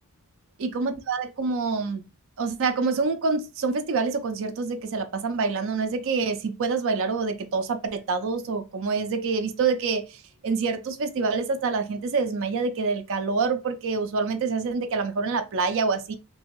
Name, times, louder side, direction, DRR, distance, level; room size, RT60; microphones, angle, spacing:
voice 1, 0.6-2.0 2.4-16.1, right 4 dB, 60° right, 0.4 m, -26 dB
3.0 x 2.6 x 2.9 m
head